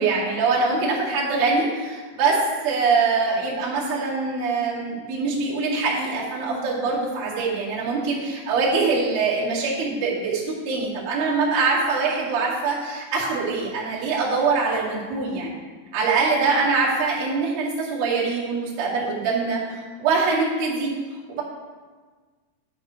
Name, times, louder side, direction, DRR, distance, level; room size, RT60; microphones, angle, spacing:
voice 1, 0.0-2.4 2.6-15.6 15.9-20.9 21.3-21.4, right 4 dB, 55° right, -7 dB, 3.5 m, -23 dB
11.5 x 5.2 x 5.1 m, 1.4 s
omnidirectional pair, 5.7 m